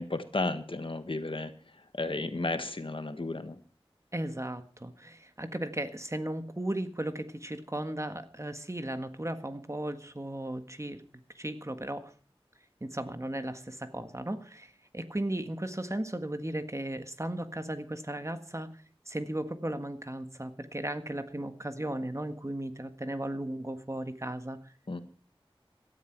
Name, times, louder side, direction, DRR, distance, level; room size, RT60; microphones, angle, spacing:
voice 1, 0.0-1.5 1.9-3.6 24.9-25.0, left 2 dB, 60° left, 9 dB, 1.6 m, -33 dB
voice 2, 4.1-11.0 11.3-12.1 12.8-24.7, right 1 dB, 30° right, 8 dB, 1.7 m, -36 dB
18.0 x 13.0 x 4.7 m, 0.40 s
wide cardioid pair, 40°, 10 cm